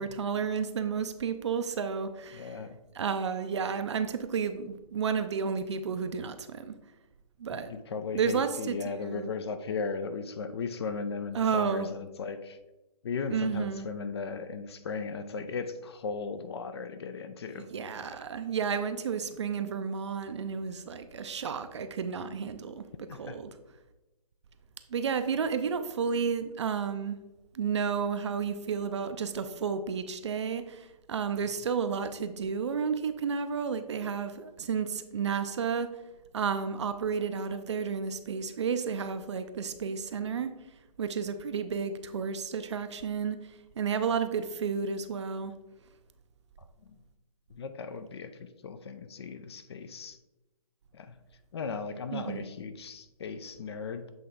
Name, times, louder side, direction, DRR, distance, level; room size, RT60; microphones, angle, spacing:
voice 1, 0.0-2.6 2.9-6.7 7.4-7.7 8.1-9.3 11.3-11.9 13.3-13.9 17.5-22.8 23.2-23.5 24.9-27.2 27.5-35.9 36.3-40.5 41.0-45.5 52.1-52.4, right 6 dB, 45° right, 10 dB, 0.5 m, -32 dB
voice 2, 2.3-2.8 7.5-12.6 13.0-17.7 18.1-18.2 22.2-22.4 23.1-23.4 46.8-47.0 47.5-50.2 50.9-51.2 51.5-54.1, left 5 dB, 40° left, 10 dB, 0.5 m, -37 dB
7.8 x 3.3 x 3.7 m, 1.0 s
figure-of-eight pair, 145°, 20 cm